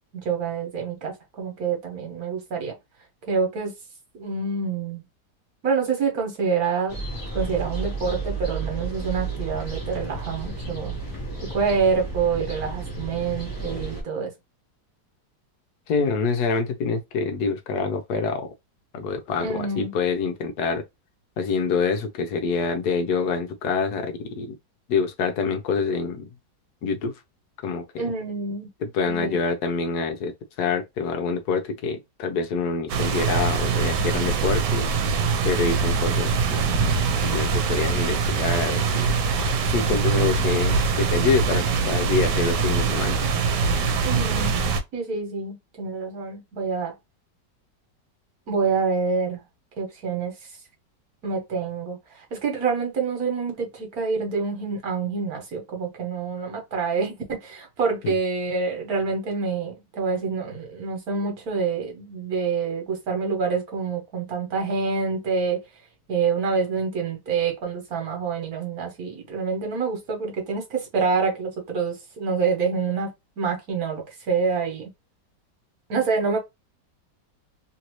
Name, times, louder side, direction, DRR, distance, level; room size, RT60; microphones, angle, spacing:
voice 1, 0.1-2.7 3.3-3.7 4.1-5.0 5.6-7.0 7.3-10.9 11.5-14.3 19.4-19.9 28.0-28.7 29.1-29.4 44.0-44.6 44.9-46.9 48.5-49.4 49.8-50.3 51.2-65.6 66.1-73.1 73.4-74.9 75.9-76.4, right 5 dB, 60° right, 1.5 m, -27 dB
sound 1, 6.9-14.0, right 3 dB, 15° left, 0.8 m, -32 dB
voice 2, 15.9-18.5 18.9-20.8 21.4-24.6 24.9-26.3 26.8-27.1 27.6-28.1 28.8-34.9 35.4-36.6 37.2-39.1 39.7-43.2 58.0-58.1, left 5 dB, 70° left, 1.1 m, -26 dB
sound 2, 32.9-44.8, right 5 dB, 85° right, 1.3 m, -23 dB
3.2 x 2.6 x 3.0 m
omnidirectional pair, 1.8 m